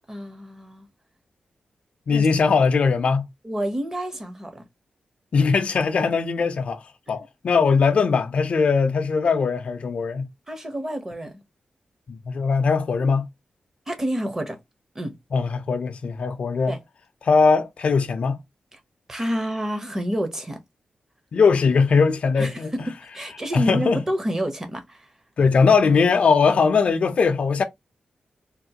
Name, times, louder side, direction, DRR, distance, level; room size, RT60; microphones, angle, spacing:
voice 1, 0.1-0.9 2.1-2.3 3.4-4.6 7.1-7.3 10.5-11.4 13.9-14.6 14.9-15.1 16.7-16.8 19.1-20.6 22.4-25.1, equal, 20° right, 0.8 m, -29 dB
voice 2, 2.1-3.3 5.3-6.8 7.1-10.3 12.1-13.3 15.3-16.7 17.2-18.4 21.3-22.9 23.5-24.0 25.4-27.6, left 5 dB, 55° left, 0.4 m, -20 dB
3.5 x 2.4 x 2.7 m
wide cardioid pair, 140°, 2 cm